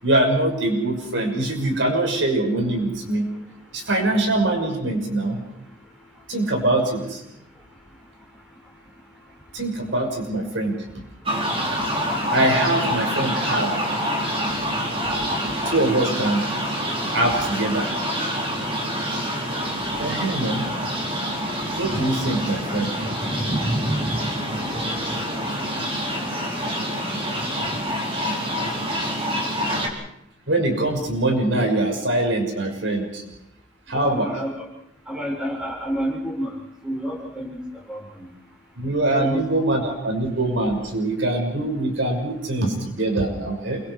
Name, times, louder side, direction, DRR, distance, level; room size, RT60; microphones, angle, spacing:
voice 1, 0.0-3.2 3.7-5.4 6.3-7.2 9.5-10.8 12.3-13.7 15.6-16.4 17.1-17.9 20.0-20.7 21.8-22.9 30.5-33.2 33.9-34.4 38.8-43.8, right 2 dB, 70° right, 3 dB, 6.2 m, -23 dB
sound 1, 11.3-29.9, equal, 30° right, 4.9 m, -26 dB
voice 2, 24.6-25.6 33.9-34.5 35.1-36.5 36.8-37.6 37.9-38.3 39.1-39.4, equal, 5° right, -1 dB, 6.9 m, -30 dB
28.5 x 24.5 x 4.9 m, 0.77 s
head